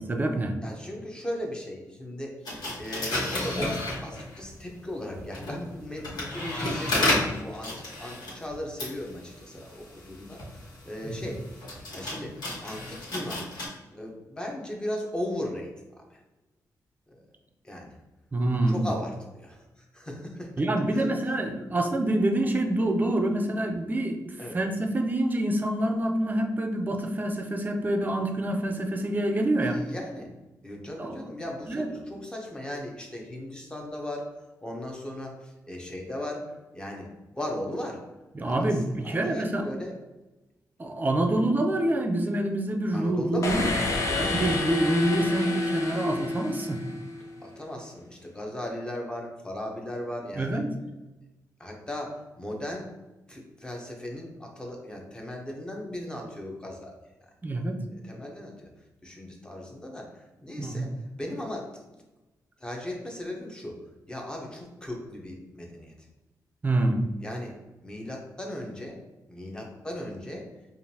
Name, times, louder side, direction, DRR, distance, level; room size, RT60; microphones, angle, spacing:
voice 1, 0.0-0.6 11.0-11.2 18.3-18.9 20.6-29.8 31.0-31.2 31.7-32.1 38.3-39.7 40.8-46.8 50.4-50.7 57.4-57.8 60.6-60.9 66.6-67.1, right 1 dB, 25° right, 4 dB, 0.5 m, -26 dB
voice 2, 0.6-11.4 11.9-12.3 12.6-13.5 13.9-15.7 16.0-16.2 17.1-17.2 17.6-17.9 18.7-19.6 19.9-20.5 20.9-21.3 24.4-24.6 29.6-30.3 30.6-34.2 34.6-38.0 38.4-38.7 39.0-39.9 42.9-44.5 45.1-45.3 47.4-50.6 51.6-52.9 53.3-56.9 57.9-58.7 59.0-60.9 61.2-61.9 62.6-63.7 64.1-65.9 67.2-67.5 67.8-69.0 69.3-70.4, left 1 dB, 10° left, 0 dB, 0.8 m, -37 dB
sound 1, 2.5-4.5 5.2-13.7, left 1 dB, 80° left, 1.4 m, -32 dB
sound 2, 43.4-47.3, left 2 dB, 50° left, 0.7 m, -29 dB
5.0 x 2.5 x 2.8 m, 1.1 s
wide cardioid pair, 115°, 7 cm